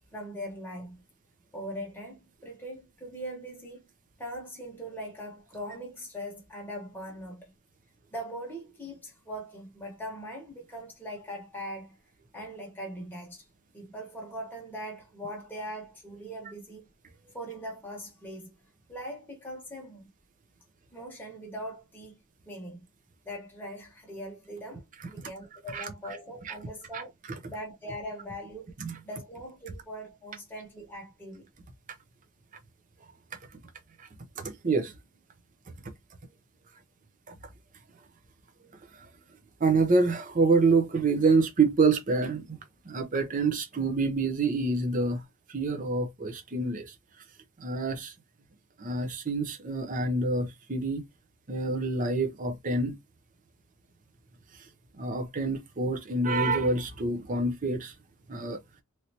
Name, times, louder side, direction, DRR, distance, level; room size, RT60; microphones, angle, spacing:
voice 1, 0.1-1.0 1.5-3.8 4.2-7.5 8.1-12.0 12.3-13.5 13.7-16.9 17.2-18.5 18.9-20.1 20.9-22.2 22.4-22.8 23.2-27.1 27.5-28.7 29.0-31.5, equal, 10° left, 1.1 m, -41 dB
voice 2, 25.7-26.2 26.4-26.5 26.9-27.0 28.8-28.9 34.0-34.1 34.4-34.9 37.3-37.4 39.0-39.1 39.6-42.6 42.8-45.2 45.5-46.9 47.6-48.1 48.8-51.0 51.5-53.0 54.9-57.9 58.3-58.6, right 3 dB, 40° right, 0.6 m, -27 dB
3.2 x 2.7 x 2.8 m
head